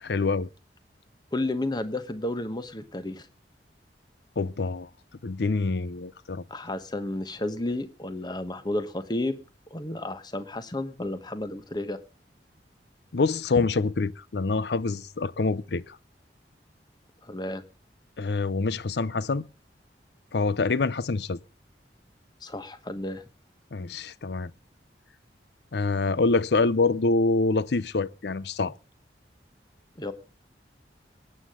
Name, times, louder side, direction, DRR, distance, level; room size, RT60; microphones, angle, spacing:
voice 1, 0.0-0.5 4.4-4.9 5.2-6.4 13.1-16.0 18.2-19.4 20.3-21.4 23.7-24.5 25.7-28.7, left 3 dB, 70° left, 0.6 m, -26 dB
voice 2, 1.3-3.3 6.5-9.4 9.7-12.0 17.2-17.6 22.4-23.2 30.0-30.1, left 1 dB, 25° left, 1.1 m, -32 dB
20.0 x 9.3 x 3.7 m
head